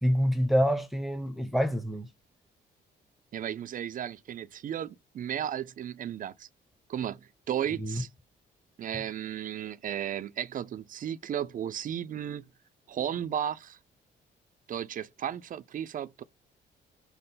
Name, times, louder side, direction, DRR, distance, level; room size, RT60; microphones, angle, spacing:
voice 1, 0.0-2.1 7.8-8.0, equal, ahead, 0.8 m, -27 dB
voice 2, 3.3-6.5 6.9-8.1 8.8-12.5 12.9-13.8 14.7-16.2, right 10 dB, 45° right, 0.4 m, -34 dB
5.5 x 2.1 x 3.9 m
cardioid pair, 90°, 20 cm